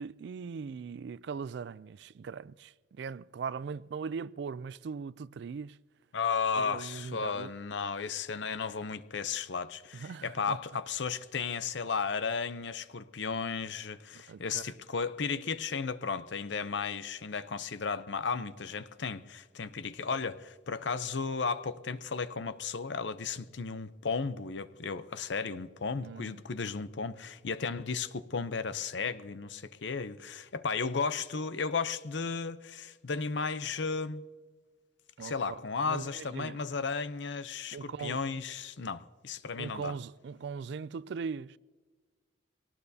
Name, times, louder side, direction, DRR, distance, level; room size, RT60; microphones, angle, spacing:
voice 1, 0.0-5.8 6.6-7.5 9.9-10.6 14.1-14.7 26.0-26.4 35.2-35.6 35.8-36.6 37.7-38.2 39.6-41.6, right 5 dB, 60° right, 0.3 m, -40 dB
voice 2, 6.1-34.2 35.2-40.0, left 5 dB, 70° left, 0.6 m, -34 dB
23.0 x 18.5 x 2.8 m
head